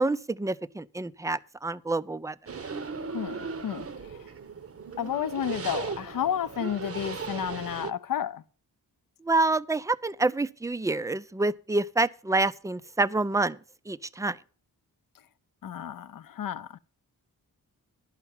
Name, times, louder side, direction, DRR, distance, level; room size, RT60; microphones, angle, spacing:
voice 1, 0.0-2.3 9.2-13.6 13.9-14.4, right 2 dB, 10° right, 0.4 m, -27 dB
sound 1, 2.5-7.9, right 5 dB, 35° right, 0.8 m, -37 dB
voice 2, 3.1-4.3 5.0-8.4 15.6-16.8, left 9 dB, 60° left, 0.6 m, -32 dB
11.0 x 5.9 x 7.2 m
cardioid pair, 60°, 38 cm